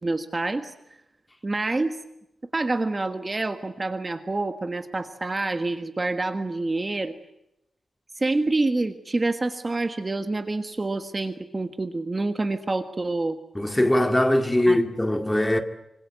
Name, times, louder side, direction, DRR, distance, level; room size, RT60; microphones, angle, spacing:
voice 1, 0.0-0.7 1.4-2.0 2.5-7.1 8.2-13.4 14.7-14.8, right 2 dB, 25° right, 1.5 m, -27 dB
voice 2, 13.6-15.6, left 1 dB, 10° left, 2.1 m, -21 dB
26.5 x 26.0 x 8.0 m
wide cardioid pair, 175°, 0 cm